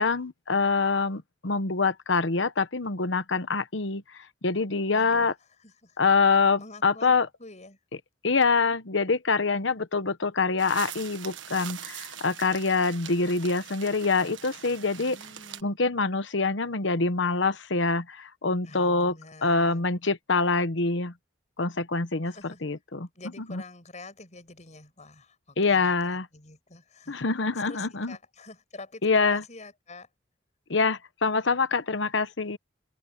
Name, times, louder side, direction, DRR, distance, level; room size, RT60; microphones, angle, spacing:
voice 1, 0.0-5.3 6.0-7.3 8.2-15.2 15.6-19.2 19.4-21.1 21.6-23.1 23.4-23.6 25.6-26.3 27.1-28.2 29.0-29.4 30.7-32.6, left 4 dB, 70° left, 1.1 m, -25 dB
voice 2, 4.9-5.3 5.6-6.0 6.6-7.1 7.4-7.8 14.9-15.8 18.6-19.8 22.3-22.6 23.1-27.2 27.6-30.1, left 3 dB, 40° left, 6.6 m, -47 dB
sound 1, 10.6-15.6, right 10 dB, 85° right, 1.5 m, -42 dB
head